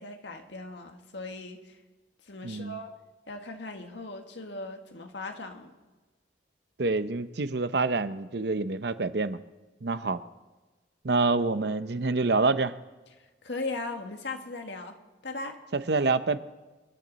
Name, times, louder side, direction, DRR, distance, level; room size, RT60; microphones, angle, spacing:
voice 1, 0.0-1.8 2.3-2.9 3.3-5.7 13.4-15.0 15.2-15.6, left 2 dB, 70° left, 4 dB, 1.7 m, -38 dB
voice 2, 2.4-2.8 6.8-9.4 9.8-10.2 11.0-12.7 15.7-16.4, right 3 dB, 60° right, 12 dB, 0.7 m, -27 dB
27.0 x 10.5 x 4.1 m, 1.2 s
head